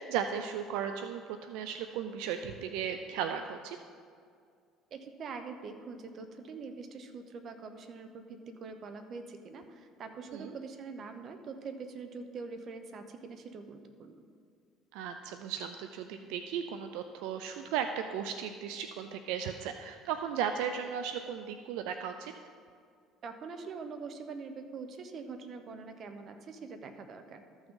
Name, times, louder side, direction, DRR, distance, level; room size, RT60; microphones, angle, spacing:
voice 1, 0.0-3.8 10.3-10.5 14.9-22.3, right 8 dB, 80° right, 8 dB, 0.4 m, -36 dB
voice 2, 4.9-14.2 23.2-27.4, right 4 dB, 50° right, 8 dB, 0.8 m, -44 dB
13.5 x 6.1 x 3.8 m, 2.2 s
supercardioid pair, 90°, 0 cm